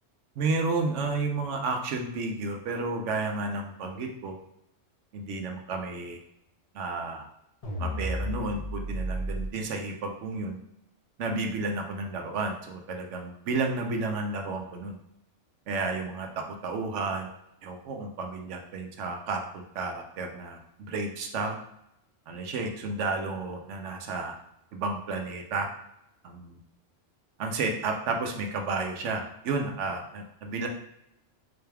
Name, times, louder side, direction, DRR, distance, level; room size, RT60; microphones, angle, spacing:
voice 1, 0.4-4.4 5.1-6.2 6.7-7.2 7.8-10.6 11.2-15.0 15.7-17.3 17.6-21.6 22.3-24.3 24.7-25.7 26.2-26.6 27.4-30.7, right 3 dB, 75° right, 3 dB, 0.9 m, -32 dB
sound 1, 7.6-9.5, equal, 40° left, 0.6 m, -32 dB
4.0 x 2.2 x 3.3 m, 0.80 s
omnidirectional pair, 1.3 m